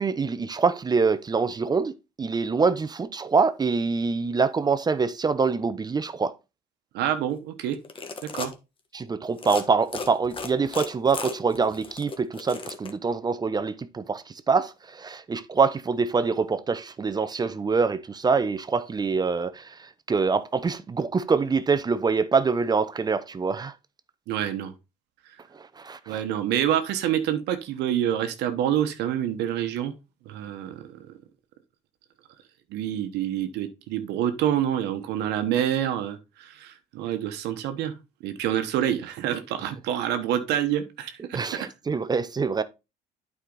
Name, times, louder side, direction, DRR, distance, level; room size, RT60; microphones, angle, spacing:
voice 1, 0.0-6.3 8.9-19.6 20.1-23.7 25.8-26.2 41.3-42.6, right 5 dB, 25° right, 0.6 m, -25 dB
voice 2, 6.9-7.8 8.2-8.5 24.3-24.7 26.1-29.9 30.3-30.9 32.7-37.9 38.2-41.4, right 10 dB, 85° right, 1.1 m, -27 dB
sound 1, 7.7-8.5 9.3-9.6 9.9-12.9, left 4 dB, 30° left, 1.3 m, -35 dB
8.7 x 4.9 x 3.9 m
cardioid pair, 110°, 17 cm